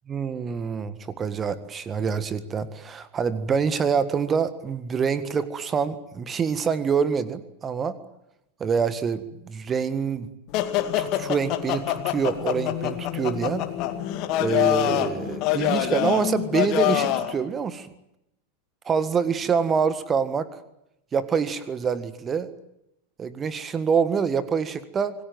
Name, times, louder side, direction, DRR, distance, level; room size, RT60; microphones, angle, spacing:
voice 1, 0.1-8.0 8.6-10.3 11.0-13.6 14.4-17.9 18.9-20.5 21.1-22.5 23.2-25.1, right 6 dB, 20° right, 14 dB, 1.7 m, -26 dB
sound 1, 10.5-17.3, left 13 dB, 40° left, 2.2 m, -25 dB
26.5 x 19.5 x 9.3 m, 0.84 s
figure-of-eight pair, 90°, 0 cm